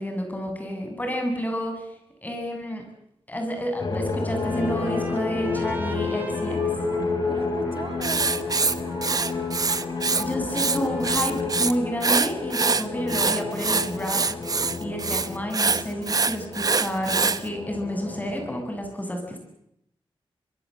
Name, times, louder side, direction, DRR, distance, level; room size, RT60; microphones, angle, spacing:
voice 1, 0.0-1.9 2.2-2.8 3.3-6.6 10.2-14.2 14.8-19.4, equal, 15° left, 4 dB, 7.6 m, -30 dB
sound 1, 3.8-18.6, left 4 dB, 45° left, 4.6 m, -30 dB
Trumpet, 4.2-11.5, right 2 dB, 20° right, 5.4 m, -42 dB
voice 2, 7.2-9.4 13.0-13.4, right 4 dB, 70° right, 6 dB, 3.3 m, -40 dB
Writing, 8.0-10.2 10.5-11.7 12.0-17.4, right 4 dB, 40° right, 1.1 m, -24 dB
24.5 x 23.0 x 7.8 m, 0.77 s
wide cardioid pair, 100°, 10 cm